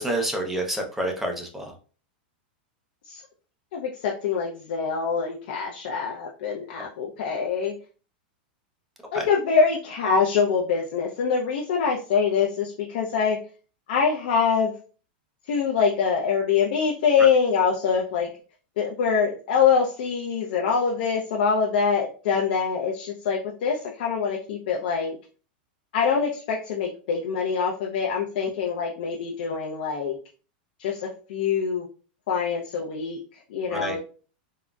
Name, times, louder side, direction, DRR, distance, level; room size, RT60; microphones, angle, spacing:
voice 1, 0.0-1.7 9.1-9.3 33.7-34.0, right 1 dB, 5° right, 2 dB, 0.6 m, -28 dB
voice 2, 3.7-7.8 9.1-13.4 13.9-14.8 15.4-18.3 18.8-25.2 25.9-30.2 30.8-31.9 32.3-34.0, left 6 dB, 70° left, -1 dB, 0.5 m, -24 dB
3.7 x 2.0 x 2.3 m, 0.38 s
supercardioid pair, 140°, 5 cm